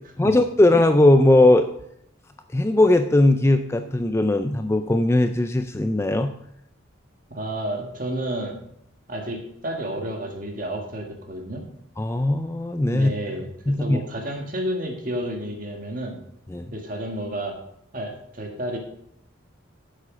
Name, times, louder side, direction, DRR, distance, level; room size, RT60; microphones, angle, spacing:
voice 1, 0.2-1.7 2.5-6.3 12.0-13.1 13.7-14.0 16.5-16.6, left 1 dB, 15° left, 8 dB, 0.4 m, -18 dB
voice 2, 7.3-8.6 9.1-11.6 12.9-16.2 16.7-17.6 17.9-18.8, right 1 dB, 45° right, 2 dB, 1.8 m, -31 dB
10.0 x 7.5 x 5.0 m, 0.73 s
head